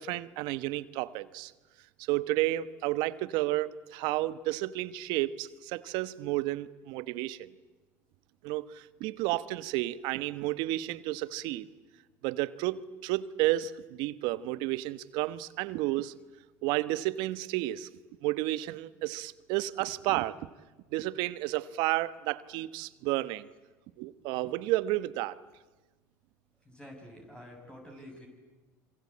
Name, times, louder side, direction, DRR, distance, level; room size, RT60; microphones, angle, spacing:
voice 1, 0.0-1.5 2.0-7.5 8.4-11.7 12.2-16.1 16.6-17.9 18.2-20.4 20.9-23.5 24.0-25.4, right 17 dB, 70° right, 1.2 m, -31 dB
voice 2, 26.6-28.3, equal, 10° left, 7.1 m, -48 dB
27.5 x 24.5 x 8.7 m
supercardioid pair, 90°, 8 cm